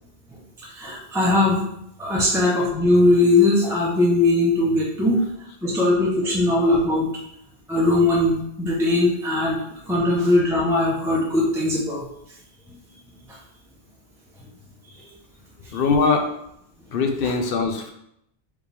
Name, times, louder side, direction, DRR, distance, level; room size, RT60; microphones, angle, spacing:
voice 1, 0.6-1.6 2.0-5.2 5.6-7.1 7.7-9.6 9.9-12.1 13.3-13.4 15.0-15.1, left 2 dB, 5° right, -4 dB, 0.7 m, -20 dB
voice 2, 15.7-16.3 16.9-17.9, left 4 dB, 60° left, 4 dB, 0.8 m, -21 dB
4.9 x 3.1 x 3.4 m, 0.76 s
omnidirectional pair, 1.1 m